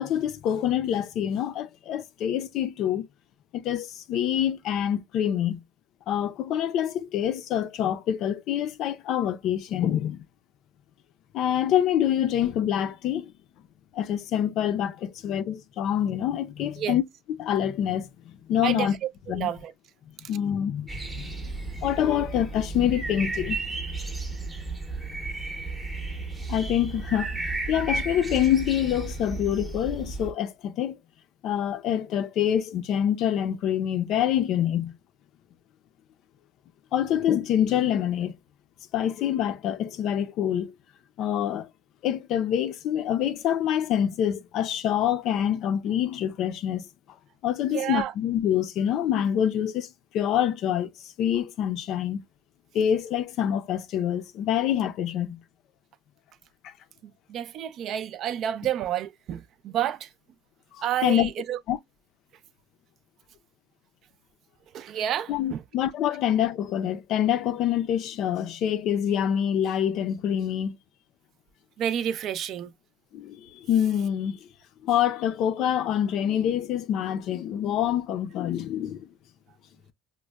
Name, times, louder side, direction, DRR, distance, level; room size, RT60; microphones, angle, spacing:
voice 1, 0.0-3.1 3.5-5.6 6.1-10.2 11.3-13.3 13.9-17.0 17.3-19.0 19.3-19.5 20.3-20.9 21.1-21.5 21.8-23.6 26.5-27.4 27.7-31.0 31.4-35.0 36.9-38.4 38.9-40.7 41.2-41.7 42.0-46.9 47.4-50.9 51.2-52.2 52.7-55.4 56.6-56.7 60.7-61.3 61.7-61.8 65.3-70.8 73.1-74.4 74.8-79.1, left 10 dB, 55° left, 0.4 m, -26 dB
voice 2, 19.3-19.7 47.7-48.1 57.3-60.1 60.8-61.6 64.7-65.6 71.8-72.7, right 10 dB, 50° right, 0.4 m, -29 dB
sound 1, 20.9-30.3, right 3 dB, 15° right, 0.7 m, -33 dB
5.0 x 2.1 x 2.2 m
cardioid pair, 130°, 0 cm